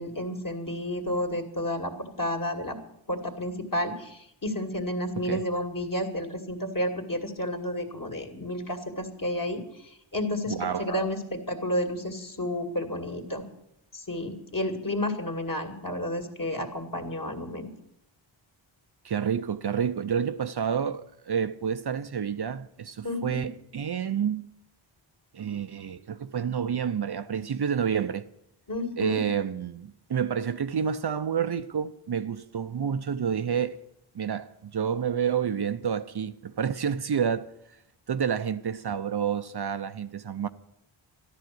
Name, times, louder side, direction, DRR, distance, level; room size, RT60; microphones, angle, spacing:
voice 1, 0.0-2.8 3.1-13.4 13.9-17.7 23.0-23.4 28.7-29.2, left 1 dB, 40° left, 2.4 m, -31 dB
voice 2, 10.5-10.9 19.0-24.5 25.3-28.3 29.0-33.8 34.1-37.5 38.1-40.5, right 7 dB, 50° right, 0.6 m, -29 dB
13.5 x 11.5 x 7.7 m
wide cardioid pair, 95°, 50 cm